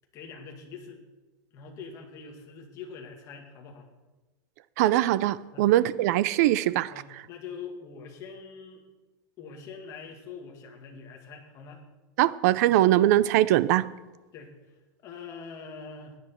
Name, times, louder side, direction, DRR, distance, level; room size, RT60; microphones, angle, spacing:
voice 1, 0.1-1.0 1.5-3.9 5.5-5.7 6.9-8.8 9.4-11.8 14.3-14.5 15.0-16.2, left 5 dB, 30° left, 1 dB, 2.0 m, -43 dB
voice 2, 4.8-6.9 12.2-13.9, right 14 dB, 50° right, 18 dB, 0.5 m, -22 dB
16.5 x 10.5 x 4.4 m, 1.2 s
supercardioid pair, 170°, 11 cm